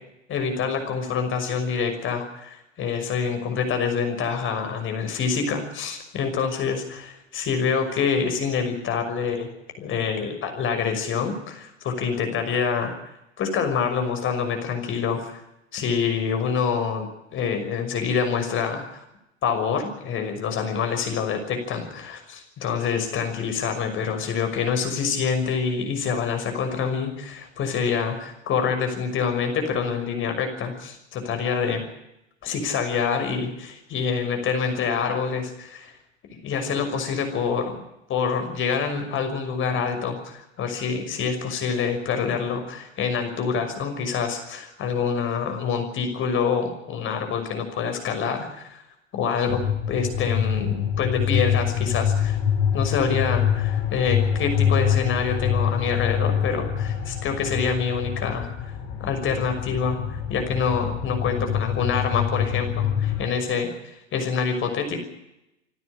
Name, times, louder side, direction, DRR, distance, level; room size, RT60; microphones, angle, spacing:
voice 1, 0.3-9.4 9.8-12.9 13.4-15.4 15.7-17.1 17.3-19.0 19.4-31.8 32.4-35.9 36.4-37.8 38.1-48.8 49.1-49.6 49.9-52.4 52.7-58.5 59.0-65.0, left 6 dB, 30° left, 6 dB, 6.0 m, -26 dB
sound 1, 49.5-63.2, left 8 dB, 50° left, 7.9 m, -25 dB
27.0 x 12.5 x 9.7 m, 0.88 s
figure-of-eight pair, 95°, 38 cm